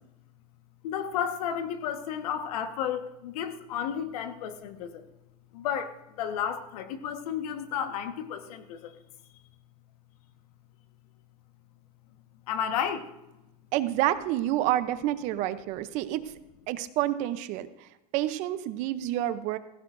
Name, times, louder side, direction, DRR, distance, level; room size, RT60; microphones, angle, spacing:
voice 1, 0.8-5.0 5.5-8.9 12.5-13.1, left 8 dB, 80° left, 8 dB, 1.3 m, -32 dB
voice 2, 13.7-16.2 16.7-19.6, right 13 dB, 40° right, 13 dB, 0.6 m, -29 dB
16.0 x 15.5 x 2.6 m, 0.98 s
supercardioid pair, 170°, 19 cm